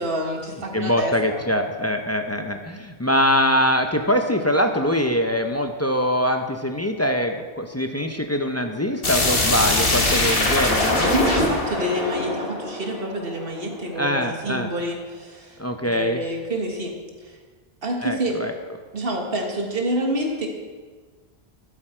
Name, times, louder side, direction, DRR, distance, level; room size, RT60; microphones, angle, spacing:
voice 1, 0.0-1.4 11.1-15.6 15.8-16.9 17.2-17.4 17.8-18.4 18.9-20.5, right 1 dB, 65° right, 1 dB, 1.8 m, -27 dB
voice 2, 0.7-11.1 13.9-14.7 15.6-16.2 18.0-18.5, equal, 20° left, 5 dB, 0.6 m, -23 dB
sound 1, 9.0-13.8, left 2 dB, 65° left, 1.9 m, -22 dB
12.5 x 8.7 x 4.4 m, 1.4 s
omnidirectional pair, 1.0 m